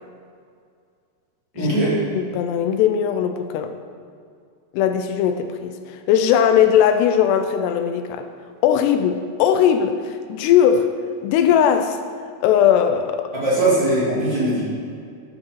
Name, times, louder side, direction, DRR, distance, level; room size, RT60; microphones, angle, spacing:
voice 1, 1.5-1.9 13.3-14.6, right 1 dB, 30° right, -9 dB, 3.3 m, -20 dB
voice 2, 2.2-3.7 4.7-8.3 8.6-10.9 11.2-12.0 12.4-13.3, left 9 dB, 85° left, 8 dB, 2.7 m, -19 dB
12.5 x 8.3 x 3.9 m, 2.3 s
omnidirectional pair, 4.8 m